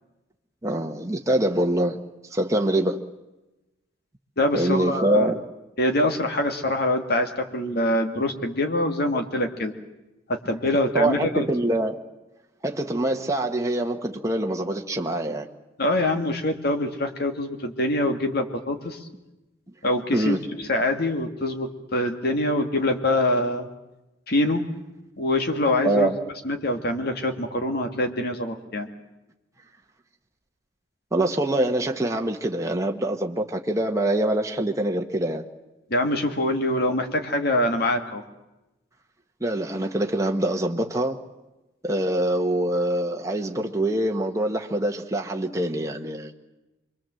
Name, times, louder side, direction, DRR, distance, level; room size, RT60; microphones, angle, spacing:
voice 1, 0.6-2.0 2.3-3.0 4.5-5.4 10.9-12.0 12.6-15.5 20.1-20.4 25.8-26.1 31.1-35.4 39.4-41.2 41.8-46.3, right 1 dB, 15° right, 2 dB, 1.2 m, -24 dB
voice 2, 4.4-5.3 5.8-9.7 10.5-11.5 15.8-19.0 19.8-23.7 24.3-24.6 25.2-26.1 26.4-28.9 35.9-38.2, left 1 dB, 55° left, 5 dB, 2.2 m, -24 dB
26.0 x 22.5 x 7.8 m, 1.0 s
head